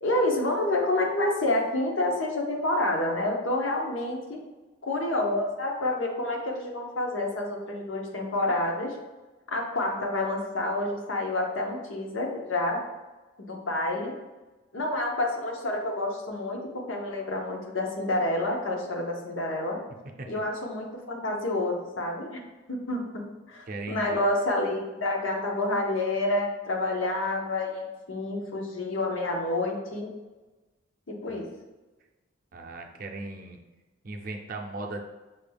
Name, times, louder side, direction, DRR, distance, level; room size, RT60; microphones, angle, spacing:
voice 1, 0.0-4.4 4.8-9.0 9.5-12.8 13.4-14.1 14.7-19.8 20.3-22.4 22.7-30.1 31.1-31.5, left 1 dB, 85° left, 0 dB, 0.8 m, -28 dB
voice 2, 23.7-24.2 31.3-31.4 32.5-33.6 34.0-35.0, right 2 dB, 45° right, 2 dB, 0.5 m, -37 dB
5.6 x 2.3 x 3.3 m, 1.2 s
head